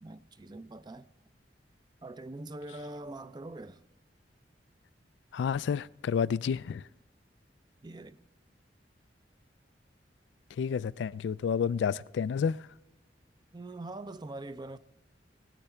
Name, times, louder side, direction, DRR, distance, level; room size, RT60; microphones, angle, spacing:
voice 1, 0.0-1.1 2.0-3.8 7.8-8.2 13.5-14.8, right 2 dB, 25° right, 0.5 m, -43 dB
voice 2, 5.3-6.8 10.6-12.6, left 6 dB, 80° left, 0.3 m, -30 dB
20.0 x 9.1 x 4.4 m
head